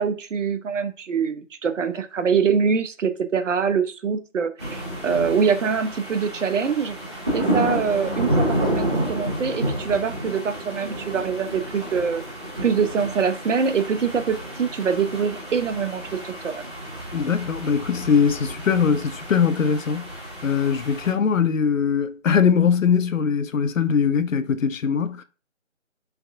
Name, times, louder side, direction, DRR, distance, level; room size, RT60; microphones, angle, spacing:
voice 1, 0.0-7.0 7.3-12.2 12.6-16.7, right 6 dB, 70° right, 0.5 m, -24 dB
sound 1, 4.6-21.1, right 1 dB, 20° right, 0.8 m, -30 dB
voice 2, 17.1-25.2, left 6 dB, 85° left, 0.5 m, -21 dB
3.4 x 3.4 x 2.3 m
figure-of-eight pair, 165°, 38 cm